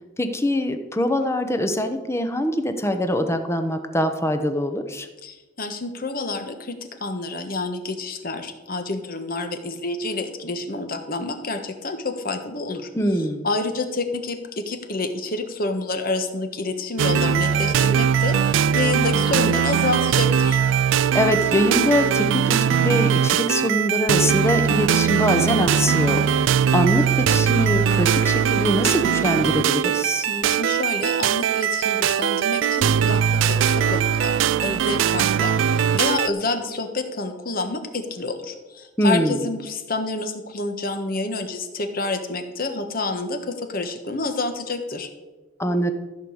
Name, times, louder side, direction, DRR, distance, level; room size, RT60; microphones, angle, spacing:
voice 1, 0.2-5.1 12.9-13.5 21.1-26.2 26.7-30.3 39.0-39.5 45.6-45.9, equal, 15° left, 7 dB, 1.0 m, -23 dB
voice 2, 5.2-12.9 13.4-20.6 30.2-45.1, left 3 dB, 50° left, 6 dB, 1.4 m, -28 dB
sound 1, 17.0-36.3, right 8 dB, 75° right, 0.3 m, -20 dB
14.5 x 5.2 x 8.0 m, 1.2 s
head